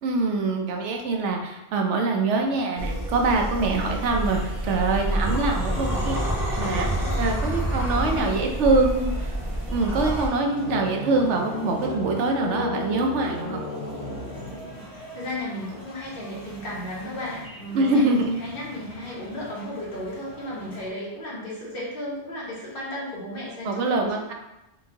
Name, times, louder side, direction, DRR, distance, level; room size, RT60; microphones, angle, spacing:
voice 1, 0.0-6.2 6.6-6.9 7.2-9.1 9.7-13.6 17.7-18.4 23.6-24.3, right 3 dB, 75° right, 2 dB, 0.9 m, -24 dB
sound 1, 2.8-10.3, right 1 dB, 5° right, 0.5 m, -27 dB
sound 2, 4.1-20.9, equal, 20° left, 0.9 m, -45 dB
voice 2, 6.9-8.9 14.7-14.9 15.1-24.1, left 1 dB, 50° left, -6 dB, 1.4 m, -35 dB
sound 3, 10.4-15.1, left 2 dB, 90° left, 1.1 m, -34 dB
4.2 x 2.6 x 2.8 m, 0.93 s
omnidirectional pair, 1.2 m